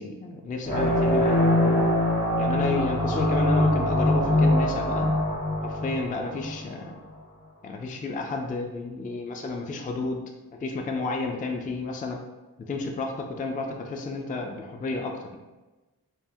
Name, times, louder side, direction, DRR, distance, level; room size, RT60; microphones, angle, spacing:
voice 1, 0.0-1.8 2.4-5.1 5.6-7.0 7.6-10.2 10.6-12.2 12.6-15.3, left 3 dB, 25° left, 3 dB, 0.3 m, -31 dB
sound 1, 0.6-6.8, left 1 dB, 60° left, 1.3 m, -23 dB
3.4 x 2.1 x 2.6 m, 1.2 s
cardioid pair, 45°, 38 cm